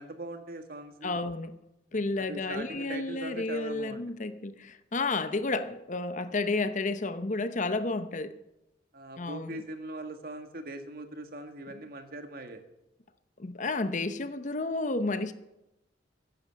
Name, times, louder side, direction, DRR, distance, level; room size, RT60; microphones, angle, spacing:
voice 1, 0.0-1.1 2.2-4.0 8.9-12.6, right 2 dB, 55° right, 1.7 m, -41 dB
voice 2, 1.0-1.5 1.9-8.3 9.2-9.6 13.4-15.3, left 3 dB, 45° left, 0.8 m, -31 dB
14.5 x 10.5 x 7.5 m
head